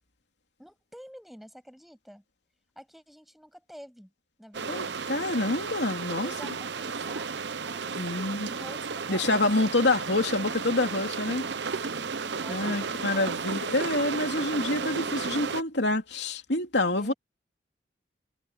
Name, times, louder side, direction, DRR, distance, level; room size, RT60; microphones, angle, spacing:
voice 1, 0.6-2.2 2.8-4.1 4.4-5.1 6.2-9.5 11.9-13.4 16.9-17.1, equal, ahead, 7.4 m, -48 dB
sound 1, 4.5-15.6, right 5 dB, 70° right, 0.9 m, -33 dB
voice 2, 4.7-6.3 8.0-8.5 9.1-11.4 12.5-17.1, left 2 dB, 70° left, 2.9 m, -27 dB
head